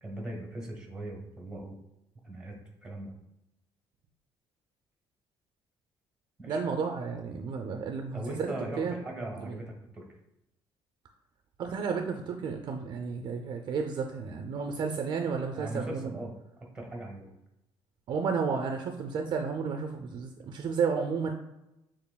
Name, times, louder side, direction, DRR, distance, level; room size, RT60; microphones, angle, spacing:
voice 1, 0.0-1.8 2.2-2.6 2.8-3.1 6.4-6.6 8.1-10.0 15.5-16.3 16.7-17.3, right 1 dB, 5° right, 0 dB, 1.1 m, -39 dB
voice 2, 6.5-8.9 9.4-9.6 11.6-16.1 18.1-21.3, right 5 dB, 45° right, 4 dB, 0.4 m, -32 dB
6.7 x 3.0 x 2.2 m, 0.90 s
cardioid pair, 150°, 10 cm